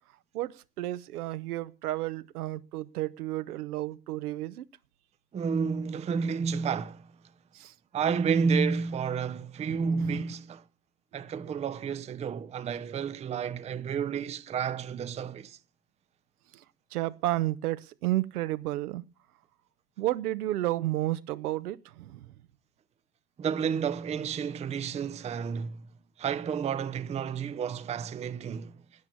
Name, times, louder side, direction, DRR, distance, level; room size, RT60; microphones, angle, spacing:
voice 1, 0.3-4.7 7.5-7.7 9.7-10.2 16.5-16.6 16.9-19.0 20.0-22.3, right 16 dB, 70° right, 0.8 m, -32 dB
voice 2, 5.3-7.1 7.9-10.6 11.1-15.6 23.4-25.9 26.2-28.8, right 6 dB, 15° right, 0.6 m, -31 dB
13.0 x 8.6 x 7.0 m
figure-of-eight pair, 75°, 47 cm